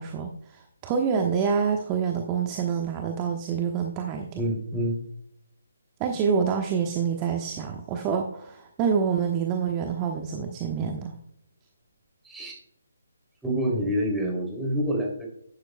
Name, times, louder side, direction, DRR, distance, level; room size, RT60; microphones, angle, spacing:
voice 1, 0.0-4.4 6.0-11.2, right 6 dB, 20° right, 3 dB, 1.1 m, -27 dB
voice 2, 4.4-5.0 12.2-12.6 13.4-15.3, equal, 5° right, -2 dB, 2.9 m, -27 dB
12.0 x 10.0 x 2.2 m, 0.75 s
figure-of-eight pair, 145°, 0 cm